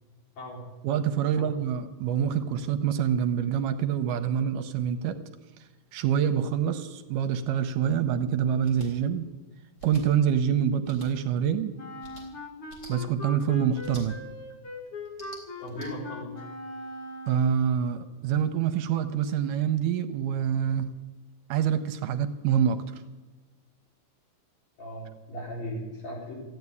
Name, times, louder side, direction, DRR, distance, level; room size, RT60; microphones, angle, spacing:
voice 1, 0.8-5.2 5.9-9.3 9.8-11.7 12.9-14.2 17.3-20.9 21.5-22.8, right 8 dB, 75° right, 9 dB, 2.1 m, -26 dB
sound 1, 8.6-8.9 9.8-10.0 10.8-11.1 12.0-12.2 12.7-12.9 13.8-14.0 15.0-15.9, right 1 dB, 20° left, 3.4 m, -46 dB
Wind instrument woodwind instrument, 11.8-17.8, left 2 dB, 50° left, 1.9 m, -40 dB
voice 2, 15.6-16.4 24.8-26.3, equal, 85° left, -3 dB, 6.4 m, -37 dB
14.5 x 9.4 x 9.6 m, 1.2 s
omnidirectional pair, 4.0 m